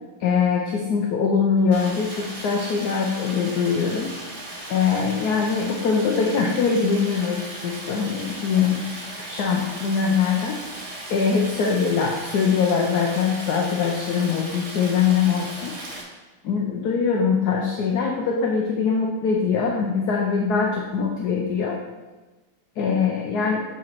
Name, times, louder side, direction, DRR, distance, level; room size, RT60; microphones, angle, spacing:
voice 1, 0.2-4.1 4.7-8.8 9.2-10.6 11.1-15.7 16.4-21.8 22.8-23.6, left 6 dB, 65° left, 0 dB, 1.1 m, -22 dB
Stream, 1.7-16.0, right 1 dB, 35° right, 0.6 m, -37 dB
7.3 x 4.1 x 4.5 m, 1.2 s
omnidirectional pair, 2.2 m